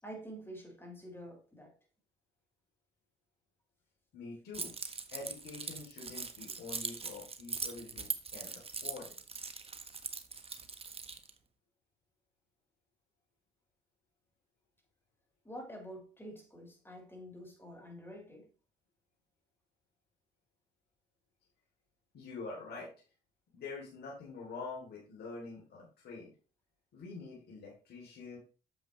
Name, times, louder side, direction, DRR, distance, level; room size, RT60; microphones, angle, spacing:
voice 1, 0.0-1.7 15.4-18.5, equal, 15° left, 5.0 m, -48 dB
voice 2, 4.1-4.7 5.1-9.1 22.1-22.9 23.5-26.3 26.9-28.4, left 4 dB, 70° left, 3.6 m, -46 dB
Keys jangling, 4.5-11.3, right 5 dB, 35° right, 1.4 m, -41 dB
9.1 x 7.4 x 3.3 m
supercardioid pair, 65°, 18 cm